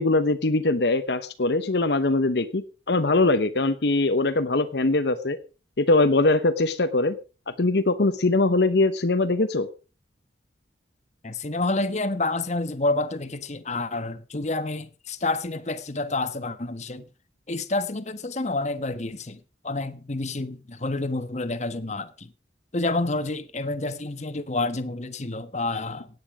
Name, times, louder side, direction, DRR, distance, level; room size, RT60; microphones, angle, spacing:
voice 1, 0.0-5.4 5.8-7.2 7.5-9.7, left 2 dB, 65° left, 0.9 m, -22 dB
voice 2, 11.2-17.0 17.5-22.3 22.7-26.1, left 2 dB, 40° left, 1.2 m, -29 dB
16.5 x 9.6 x 4.8 m
head